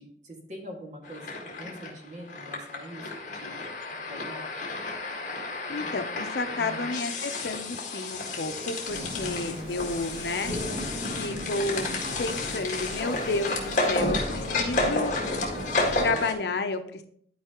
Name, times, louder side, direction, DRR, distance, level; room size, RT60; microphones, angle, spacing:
voice 1, 0.0-3.6 4.1-4.5 6.6-6.8 9.2-9.7 15.8-16.5, right 1 dB, 45° right, 0 dB, 2.0 m, -43 dB
sound 1, 1.0-16.3, left 3 dB, 45° left, 1.8 m, -32 dB
voice 2, 5.7-10.5 11.2-11.9 12.2-15.1 16.0-17.1, left 3 dB, 70° left, 7 dB, 0.7 m, -31 dB
sound 2, 8.9-16.1, equal, 70° right, 2.7 m, -36 dB
12.5 x 4.8 x 3.0 m, 0.63 s
head